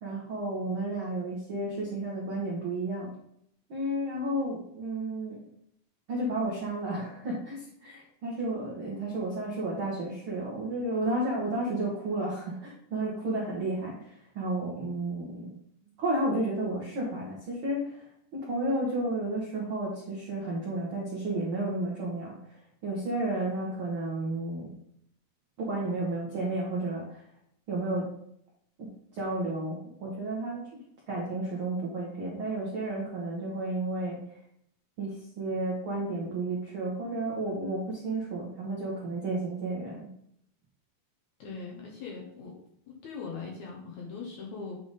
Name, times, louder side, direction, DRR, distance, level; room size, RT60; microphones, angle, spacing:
voice 1, 0.0-3.1 3.7-5.4 6.1-15.5 16.0-18.0 18.3-22.3 22.8-24.7 25.6-27.2 27.7-28.1 28.8-30.6 31.1-34.2 35.0-40.1, right 2 dB, 65° right, -4 dB, 1.3 m, -32 dB
voice 2, 41.4-42.5 42.9-44.8, left 4 dB, 65° left, -2 dB, 2.0 m, -40 dB
8.6 x 3.6 x 4.0 m, 0.71 s
omnidirectional pair, 4.2 m